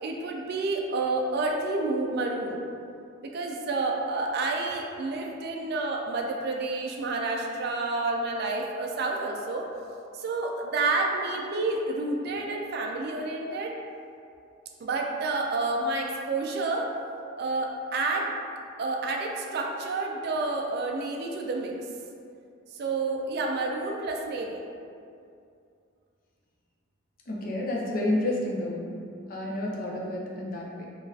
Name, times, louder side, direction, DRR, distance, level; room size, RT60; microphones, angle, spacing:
voice 1, 0.0-2.6 3.3-9.7 10.1-13.7 14.8-16.9 17.4-18.3 18.8-21.7 22.7-24.6, right 3 dB, 50° right, 0 dB, 0.3 m, -29 dB
voice 2, 27.3-28.9 29.3-30.9, left 1 dB, 40° left, -3 dB, 0.5 m, -30 dB
3.8 x 2.4 x 2.6 m, 2.4 s
head